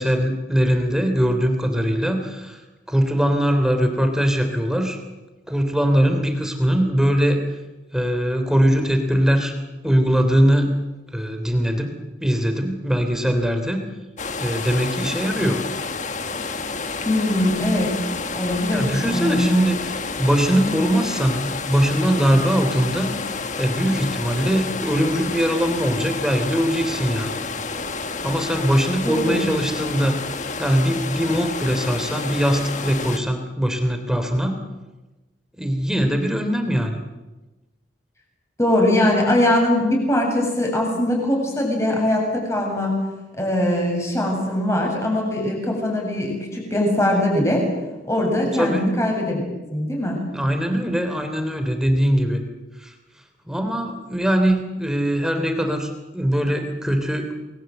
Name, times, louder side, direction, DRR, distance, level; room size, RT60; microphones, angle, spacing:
voice 1, 0.0-2.6 2.9-5.0 5.5-7.4 7.9-9.5 9.8-10.7 11.1-13.8 14.4-15.6 18.7-19.8 20.2-23.1 23.6-27.4 28.2-30.2 30.6-34.6 35.6-37.0 48.5-48.9 50.3-52.4 52.8-52.9 53.5-57.3, equal, 5° right, 6 dB, 3.2 m, -21 dB
sound 1, 14.2-33.2, left 4 dB, 40° left, 1.5 m, -30 dB
voice 2, 17.0-17.9 18.3-19.5 29.0-29.5 38.6-42.9 43.3-47.6 48.0-49.4 49.7-50.2, left 1 dB, 15° left, 1 dB, 7.6 m, -21 dB
29.5 x 21.5 x 8.0 m, 1.1 s
head